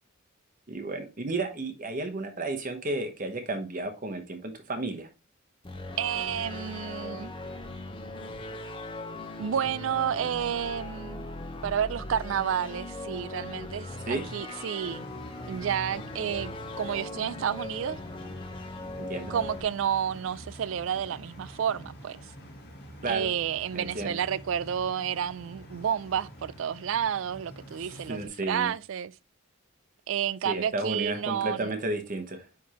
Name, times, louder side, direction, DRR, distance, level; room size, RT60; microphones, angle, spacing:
voice 1, 0.7-5.1 14.1-14.2 19.1-19.3 23.0-23.3 23.7-24.2 27.8-28.7 30.4-32.5, right 2 dB, 40° right, 1.0 m, -32 dB
sound 1, 5.6-19.6, left 2 dB, 25° left, 0.9 m, -39 dB
voice 2, 6.0-7.3 9.4-11.3 11.6-15.1 15.5-18.0 19.3-22.2 23.1-29.1 30.1-31.7, right 8 dB, 65° right, 0.3 m, -30 dB
sound 2, 14.8-28.3, equal, 50° left, 2.7 m, -47 dB
9.5 x 3.6 x 2.9 m
head